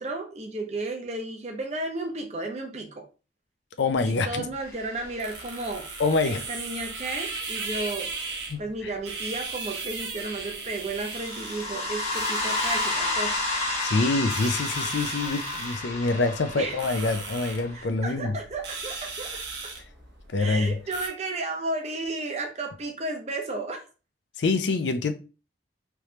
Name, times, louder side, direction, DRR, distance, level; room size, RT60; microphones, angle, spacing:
voice 1, 0.0-3.1 4.0-5.9 6.2-8.1 8.6-13.4 16.6-16.8 17.4-19.7 20.4-23.8, right 2 dB, 35° right, 0.7 m, -33 dB
voice 2, 3.8-4.4 6.0-6.4 8.5-8.9 13.8-18.4 20.3-20.8 24.4-25.1, left 3 dB, 75° left, 0.5 m, -26 dB
sound 1, 3.9-21.1, right 4 dB, 70° right, 0.9 m, -38 dB
sound 2, 4.8-5.8 11.1-17.8, left 2 dB, 35° left, 1.2 m, -31 dB
3.4 x 3.1 x 2.8 m
head